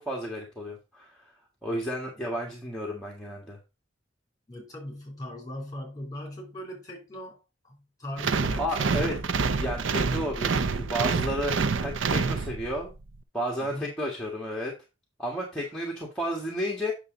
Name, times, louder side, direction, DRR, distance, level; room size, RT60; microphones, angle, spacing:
voice 1, 0.0-1.3 1.6-3.6 8.6-9.1 9.6-12.9 13.3-14.7 15.2-16.9, equal, 5° left, 1.6 m, -32 dB
voice 2, 4.5-9.2 13.6-13.9, left 1 dB, 20° left, 3.1 m, -40 dB
sound 1, 8.2-12.9, right 4 dB, 80° right, 0.6 m, -27 dB
8.3 x 6.3 x 3.8 m
head